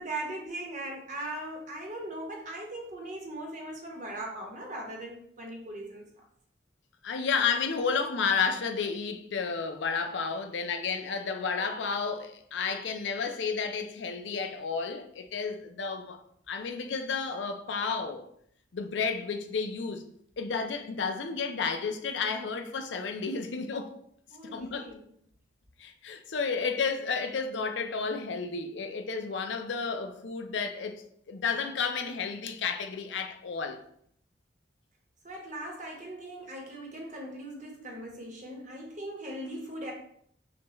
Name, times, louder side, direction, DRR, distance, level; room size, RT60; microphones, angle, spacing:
voice 1, 0.0-6.1 24.3-25.1 35.2-39.9, right 1 dB, 40° right, 1.1 m, -39 dB
voice 2, 7.0-16.2 16.5-18.3 18.7-20.1 20.4-24.0 24.5-25.0 25.8-33.8, left 5 dB, 80° left, 0.5 m, -32 dB
5.9 x 2.3 x 3.0 m
head